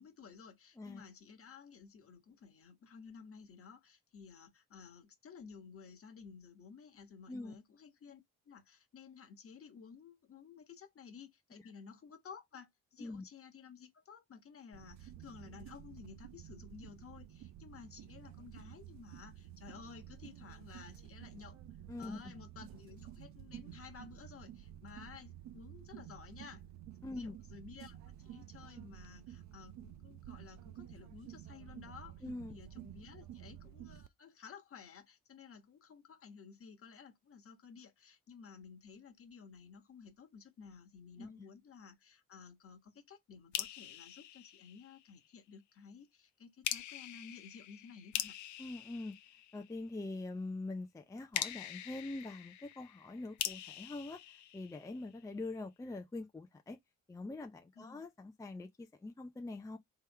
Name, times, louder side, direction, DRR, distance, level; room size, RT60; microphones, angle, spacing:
voice 1, 0.0-8.2 8.5-21.6 22.0-26.6 27.0-48.3 57.7-58.1, left 6 dB, 50° left, 1.3 m, -54 dB
sound 1, 14.7-34.1, right 11 dB, 65° right, 0.5 m, -52 dB
voice 2, 21.9-22.2 27.0-27.3 32.2-32.5 41.2-41.3 48.6-49.2 49.5-56.8 57.1-59.8, left 2 dB, 10° left, 0.4 m, -44 dB
sound 2, 43.5-45.3 46.6-50.0 51.3-55.2, left 12 dB, 75° left, 0.6 m, -43 dB
3.4 x 3.0 x 4.5 m
cardioid pair, 90°, 30 cm